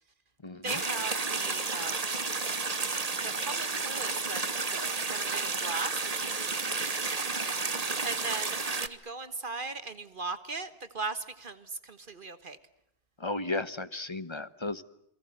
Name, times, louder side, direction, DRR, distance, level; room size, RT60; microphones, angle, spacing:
voice 1, 0.6-2.1 3.2-4.4 4.7-7.1 8.0-12.6, right 3 dB, 55° right, 11 dB, 1.6 m, -38 dB
sound 1, 0.7-8.9, right 4 dB, 40° right, 1.3 m, -32 dB
voice 2, 13.2-14.8, left 2 dB, 25° left, 13 dB, 1.1 m, -34 dB
28.5 x 22.5 x 7.9 m, 0.75 s
omnidirectional pair, 1.1 m